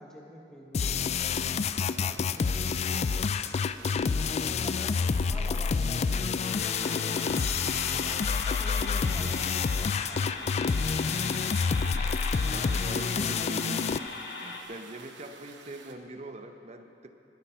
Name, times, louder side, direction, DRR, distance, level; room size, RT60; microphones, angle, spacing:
voice 1, 0.0-4.0 4.6-10.6, equal, 5° left, -2 dB, 1.5 m, -48 dB
sound 1, 0.7-14.0, left 5 dB, 35° left, 0.3 m, -28 dB
sound 2, 1.3-15.9, right 5 dB, 85° right, 1.0 m, -52 dB
sound 3, 6.4-14.6, left 3 dB, 65° left, 1.3 m, -39 dB
voice 2, 12.5-14.0 14.4-17.1, right 2 dB, 40° right, 6 dB, 0.8 m, -42 dB
20.5 x 8.7 x 5.7 m, 2.8 s
head